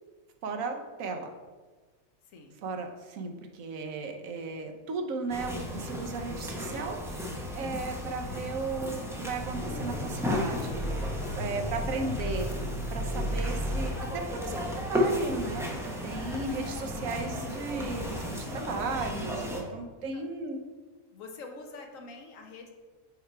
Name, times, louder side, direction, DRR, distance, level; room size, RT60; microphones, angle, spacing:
voice 1, 0.4-1.3 2.6-20.6, right 3 dB, 75° right, 4 dB, 1.1 m, -36 dB
voice 2, 2.3-2.6 11.2-11.8 20.1-20.2 21.1-22.7, left 3 dB, 70° left, 3 dB, 1.2 m, -46 dB
sound 1, 5.3-19.6, left 1 dB, 5° right, 0.6 m, -33 dB
5.6 x 4.6 x 4.5 m, 1.4 s
omnidirectional pair, 1.4 m